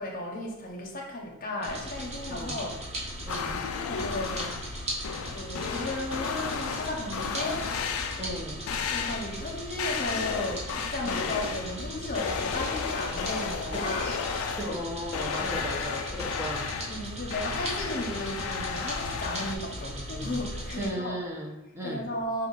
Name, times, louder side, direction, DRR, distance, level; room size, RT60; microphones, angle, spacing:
voice 1, 0.0-2.8 3.9-8.2 8.9-14.1 14.7-14.9 15.4-15.7 16.9-21.2 21.8-22.5, left 1 dB, 40° left, -1 dB, 0.7 m, -35 dB
sound 1, 1.6-20.9, equal, 30° right, 0.9 m, -38 dB
voice 2, 2.3-2.6 3.2-3.6 8.2-8.6 11.0-11.3 13.7-14.2 14.5-16.8 20.8-22.1, equal, 10° right, -2 dB, 0.5 m, -36 dB
sound 2, 3.3-4.7 5.0-8.4 8.7-9.4 9.8-11.8 12.2-14.9 15.1-19.6, left 6 dB, 75° left, 0.3 m, -33 dB
4.3 x 2.4 x 3.7 m, 0.97 s
head